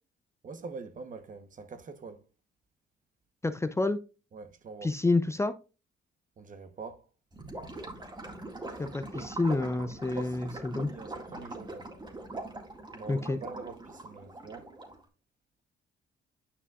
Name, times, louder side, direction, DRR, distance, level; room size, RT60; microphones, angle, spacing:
voice 1, 0.4-2.2 4.3-4.9 6.4-7.1 8.7-8.9 10.1-11.9 12.9-14.7, right 4 dB, 40° right, 1.0 m, -44 dB
voice 2, 3.4-4.0 4.8-5.5 8.8-10.9 13.1-13.4, left 2 dB, 15° left, 0.5 m, -29 dB
Gurgling / Liquid, 7.3-15.0, right 2 dB, 20° right, 2.0 m, -42 dB
9.7 x 5.6 x 2.4 m
cardioid pair, 90°, 20 cm